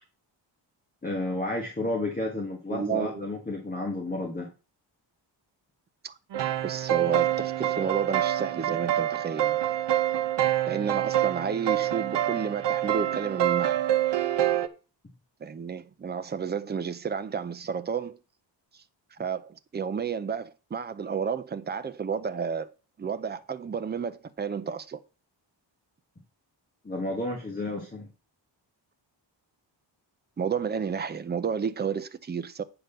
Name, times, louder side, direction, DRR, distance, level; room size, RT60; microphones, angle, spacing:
voice 1, 1.0-4.5 26.8-28.1, left 2 dB, 20° left, 1.6 m, -31 dB
voice 2, 2.7-3.2 6.0-6.2 6.6-9.8 10.7-13.8 15.4-18.2 19.1-22.7 23.0-25.0 30.4-32.6, right 6 dB, 25° right, 0.5 m, -31 dB
sound 1, 6.3-14.7, right 12 dB, 65° right, 0.9 m, -26 dB
9.1 x 3.9 x 6.8 m
wide cardioid pair, 165°, 44 cm